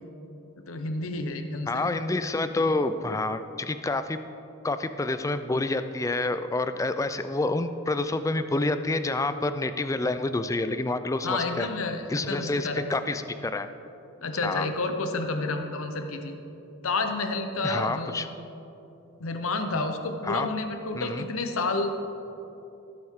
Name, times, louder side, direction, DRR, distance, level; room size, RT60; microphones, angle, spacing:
voice 1, 0.7-2.0 11.2-12.9 14.2-16.4 16.8-18.2 19.2-22.0, left 3 dB, 70° left, 6 dB, 0.8 m, -30 dB
voice 2, 1.7-4.2 4.6-11.7 12.1-13.7 14.4-14.7 17.6-18.3 20.2-20.5 20.9-21.3, left 2 dB, 15° left, 11 dB, 0.3 m, -28 dB
17.0 x 7.8 x 3.6 m, 2.9 s
head